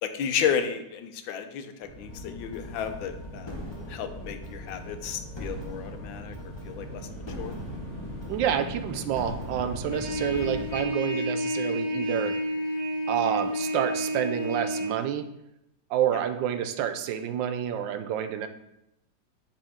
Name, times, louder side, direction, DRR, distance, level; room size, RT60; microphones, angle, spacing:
voice 1, 0.0-3.6 3.9-7.1 7.4-7.5 16.1-16.2, left 8 dB, 85° left, 8 dB, 1.4 m, -32 dB
sound 1, 1.8-10.8, right 1 dB, 15° right, 2.4 m, -41 dB
sound 2, 2.1-10.6, left 1 dB, 40° left, 0.4 m, -41 dB
voice 2, 8.3-12.3 13.1-15.3 15.9-18.5, right 9 dB, 75° right, 9 dB, 1.3 m, -28 dB
Trumpet, 9.9-14.9, equal, 55° left, 1.9 m, -30 dB
8.5 x 5.3 x 3.5 m, 0.83 s
omnidirectional pair, 2.1 m